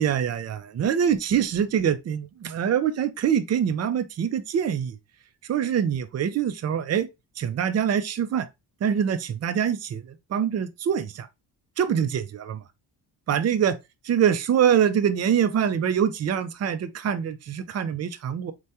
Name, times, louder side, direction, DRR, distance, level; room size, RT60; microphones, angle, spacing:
voice 1, 0.0-5.0 5.5-7.1 7.4-8.5 8.8-10.0 10.3-11.3 11.8-12.6 13.3-13.8 14.0-18.5, right 8 dB, 40° right, 0.5 m, -24 dB
3.3 x 2.2 x 2.7 m
supercardioid pair, 60°, 42 cm